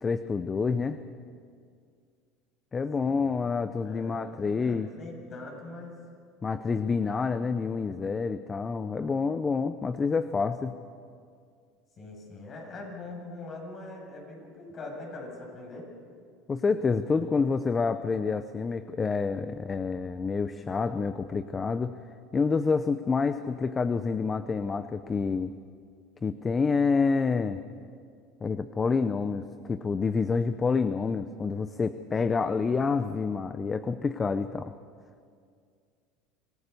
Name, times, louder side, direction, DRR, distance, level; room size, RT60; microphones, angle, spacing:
voice 1, 0.0-1.0 2.7-4.9 6.4-10.7 16.5-21.9 22.3-25.5 26.2-27.6 28.4-34.7, left 4 dB, 25° left, 11 dB, 0.7 m, -28 dB
voice 2, 3.0-3.5 3.8-6.0 12.0-15.9, left 2 dB, 40° left, 0 dB, 7.9 m, -42 dB
26.0 x 17.5 x 7.0 m, 2.2 s
supercardioid pair, 120°, 0 cm